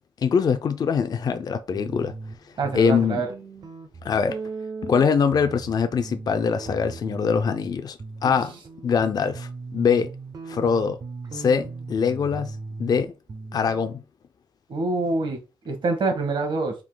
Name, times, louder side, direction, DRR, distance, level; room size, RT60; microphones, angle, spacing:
voice 1, 0.2-2.1 2.7-3.2 4.0-4.4 4.8-8.5 8.8-10.1 10.5-11.0 11.3-13.1 13.5-14.0, left 6 dB, 45° left, 0.4 m, -23 dB
sound 1, 1.7-2.4 2.6-7.7 8.0-14.0, right 4 dB, 45° right, 0.6 m, -38 dB
voice 2, 2.6-3.3 8.2-8.3 14.7-15.4 15.6-16.7, right 3 dB, 60° right, 1.2 m, -25 dB
3.7 x 2.6 x 3.8 m
wide cardioid pair, 150°, 9 cm